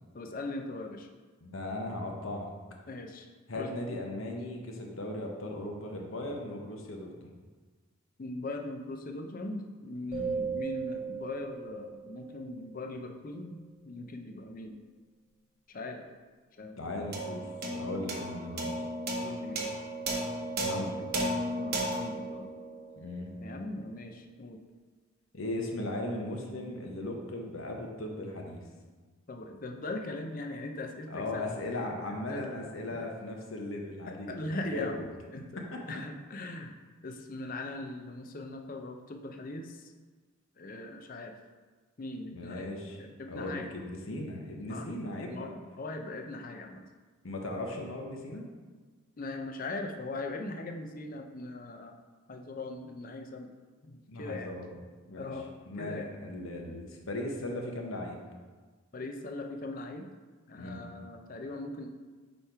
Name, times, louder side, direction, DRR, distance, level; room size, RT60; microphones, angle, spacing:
voice 1, 0.1-1.1 2.9-3.3 3.5-3.8 8.2-13.6 13.8-14.8 15.7-16.1 16.6-17.1 19.2-19.7 21.6-22.5 23.4-24.6 29.3-31.4 31.7-32.4 32.9-33.1 34.0-35.0 35.3-35.6 35.9-39.9 40.6-41.4 42.0-42.7 43.0-43.7 44.7-44.9 45.3-46.8 49.2-52.0 52.3-53.5 53.8-54.5 55.2-55.5 55.8-56.1 58.9-60.1 60.5-61.9, left 2 dB, 40° left, 4 dB, 0.5 m, -40 dB
voice 2, 1.4-2.5 3.5-7.3 10.1-10.4 16.8-17.4 17.7-18.7 20.6-21.1 23.0-23.3 25.3-28.6 31.1-35.1 35.7-35.8 42.3-43.0 43.3-45.5 47.2-48.4 54.1-54.7 55.1-55.3 55.7-58.2 60.6-60.8, left 1 dB, 70° left, 1 dB, 0.9 m, -37 dB
sound 1, 10.1-12.8, right 6 dB, 25° right, 1.3 m, -37 dB
sound 2, 17.1-23.7, right 1 dB, 45° right, 0.8 m, -35 dB
5.1 x 4.3 x 4.6 m, 1.4 s
head